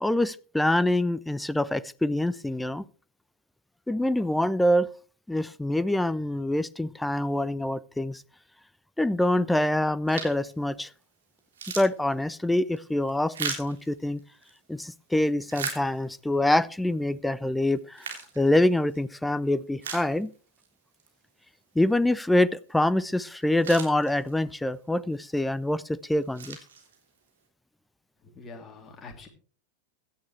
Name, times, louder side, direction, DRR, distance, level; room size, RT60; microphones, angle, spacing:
voice 1, 0.0-2.8 3.9-4.9 5.3-8.2 9.0-10.9 11.8-14.2 14.7-20.3 21.8-26.6, left 1 dB, 5° left, 18 dB, 0.5 m, -25 dB
sound 1, 10.1-10.5 11.0-11.1 11.4-14.6 15.1-16.3 16.9-17.0 17.7-19.0 19.4-19.5 19.8-20.7 21.0-21.1 23.1-23.2 23.4-24.5 25.2-25.5 26.0-27.3, right 6 dB, 65° right, 3.5 m, -38 dB
voice 2, 28.3-29.3, left 3 dB, 20° left, 3 dB, 3.0 m, -45 dB
16.5 x 11.0 x 3.2 m, 0.38 s
figure-of-eight pair, 90°, 0 cm